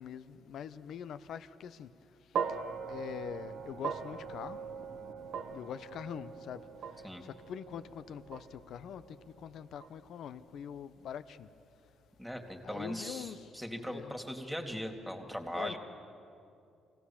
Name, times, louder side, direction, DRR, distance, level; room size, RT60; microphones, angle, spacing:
voice 1, 0.0-1.9 2.9-4.6 5.5-6.6 7.2-11.5 12.6-13.5 13.9-14.1 15.5-15.8, left 8 dB, 70° left, 13 dB, 0.7 m, -43 dB
sound 1, 2.3-10.7, right 6 dB, 60° right, 1.1 m, -41 dB
voice 2, 12.2-15.8, equal, ahead, 3 dB, 2.4 m, -39 dB
25.0 x 17.0 x 7.1 m, 2.6 s
cardioid pair, 90°, 0 cm